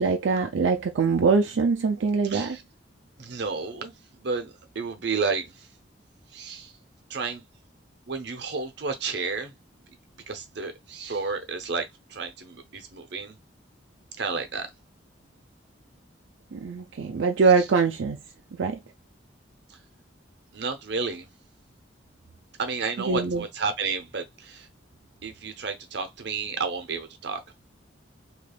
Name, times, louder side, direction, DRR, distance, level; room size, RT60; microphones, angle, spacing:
voice 1, 0.0-2.6 16.5-18.2 18.5-18.8 23.0-23.4, right 4 dB, 85° right, 0.5 m, -23 dB
voice 2, 2.3-2.6 3.2-5.7 6.3-6.7 7.1-7.4 8.1-9.5 10.3-13.3 14.2-14.7 17.6-17.7 19.7-19.8 20.5-21.3 22.6-24.7 25.2-27.4, right 4 dB, 60° right, 0.8 m, -31 dB
3.3 x 3.1 x 2.3 m
head